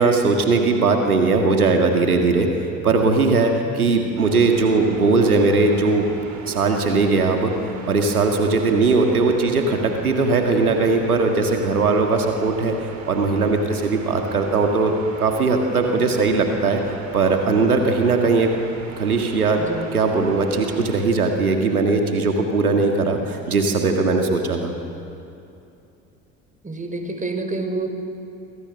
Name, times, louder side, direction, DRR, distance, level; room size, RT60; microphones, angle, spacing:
voice 1, 0.0-6.1 6.5-7.6 7.9-14.9 15.2-18.5 19.0-19.6 19.9-24.7, right 3 dB, 85° right, 3 dB, 1.9 m, -19 dB
sound 1, 4.1-21.0, right 4 dB, 40° right, 4.0 m, -38 dB
voice 2, 19.6-19.9 26.6-27.9, right 3 dB, 20° right, 6 dB, 4.8 m, -28 dB
28.5 x 24.0 x 6.5 m, 2.6 s
figure-of-eight pair, 60°, 43 cm